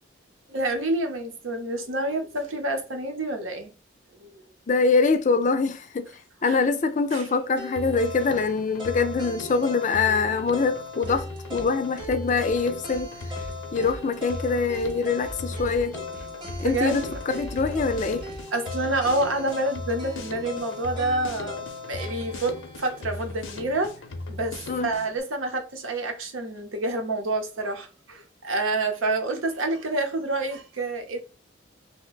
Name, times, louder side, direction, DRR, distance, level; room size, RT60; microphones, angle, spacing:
voice 1, 0.5-3.7 4.2-4.4 6.5-6.6 7.1-7.3 16.6-17.2 18.5-23.9 24.3-31.2, right 2 dB, 85° right, 0.8 m, -28 dB
voice 2, 4.7-6.1 6.4-13.1 13.7-16.0 16.6-18.2 24.7-24.9, left 4 dB, 40° left, 0.4 m, -24 dB
sound 1, 7.6-23.7, left 3 dB, 25° right, 0.9 m, -39 dB
Drum kit, 7.8-25.2, left 2 dB, 80° left, 0.6 m, -38 dB
sound 2, 11.0-11.7 12.0-18.4, right 1 dB, 45° right, 0.5 m, -43 dB
2.9 x 2.2 x 3.9 m
head